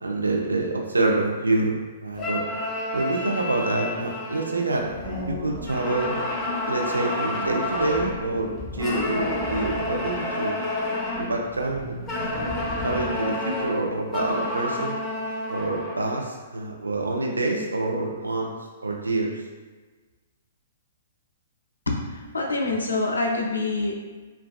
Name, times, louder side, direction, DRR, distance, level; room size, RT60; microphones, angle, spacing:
voice 1, 0.0-2.4 2.9-4.9 5.3-6.2 6.7-10.6 11.2-12.0 12.8-15.0 15.5-18.5 18.8-19.4, right 2 dB, 85° right, 0 dB, 0.4 m, -26 dB
sound 1, 2.2-5.2 5.6-8.2 8.8-11.4 12.1-16.3, left 2 dB, 15° left, 0.5 m, -30 dB
sound 2, 4.8-13.3, left 1 dB, 15° right, 1.0 m, -36 dB
voice 2, 21.9-23.9, left 2 dB, 80° left, 1 dB, 0.4 m, -26 dB
2.4 x 2.3 x 2.2 m, 1.3 s
figure-of-eight pair, 120°, 0 cm